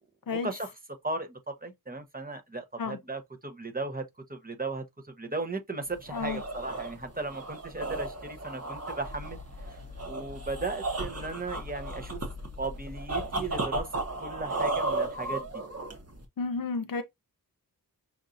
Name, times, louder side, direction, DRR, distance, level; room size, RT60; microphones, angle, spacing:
voice 1, 0.3-0.7 1.0-4.0 4.3-9.4 9.7-9.8 10.1-12.2 12.6-15.6, right 3 dB, 25° right, 1.0 m, -36 dB
sound 1, 5.9-16.2, right 2 dB, 40° right, 1.3 m, -34 dB
voice 2, 6.1-6.4 16.4-17.0, left 4 dB, 65° left, 0.7 m, -31 dB
sound 2, 7.1-14.9, left 4 dB, 20° left, 0.9 m, -47 dB
6.1 x 2.7 x 2.5 m
wide cardioid pair, 105°, 37 cm